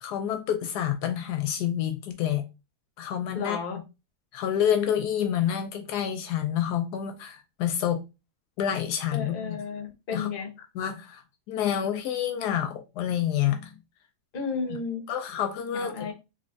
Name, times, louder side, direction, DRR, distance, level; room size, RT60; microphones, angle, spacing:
voice 1, 0.0-2.4 3.0-3.8 4.3-8.0 8.6-9.6 10.1-10.3 10.7-11.2 11.5-13.7 15.1-16.1, left 10 dB, 80° left, 1.1 m, -28 dB
voice 2, 3.3-3.8 9.1-10.5 14.3-15.0 15.7-16.1, left 5 dB, 40° left, 0.9 m, -33 dB
3.4 x 3.1 x 2.6 m
omnidirectional pair, 1.7 m